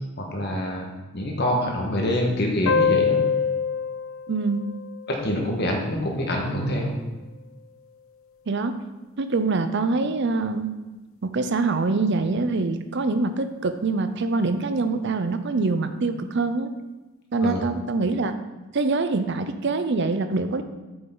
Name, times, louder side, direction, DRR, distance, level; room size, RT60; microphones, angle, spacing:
voice 1, 0.2-0.9 1.1-3.2 5.1-7.0 17.4-17.7, left 1 dB, 50° left, 0 dB, 1.4 m, -25 dB
sound 1, 2.7-5.8, left 6 dB, 65° left, 0.4 m, -25 dB
voice 2, 4.3-4.6 8.5-8.8 9.2-10.7 11.2-16.7 17.3-18.3 18.7-20.6, right 3 dB, 50° right, 9 dB, 0.5 m, -24 dB
7.9 x 6.8 x 3.9 m, 1.1 s
head